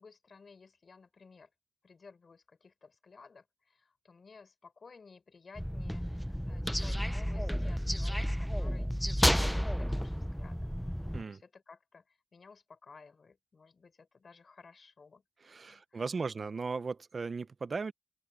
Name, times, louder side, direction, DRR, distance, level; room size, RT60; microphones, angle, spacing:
voice 1, 0.0-1.5 1.8-10.7 11.0-16.2, left 4 dB, 75° left, 6.4 m, -56 dB
sound 1, 5.6-11.2, equal, ahead, 0.4 m, -31 dB
voice 2, 15.4-17.9, right 4 dB, 65° right, 0.5 m, -37 dB
open air
wide cardioid pair, 85°, 0 cm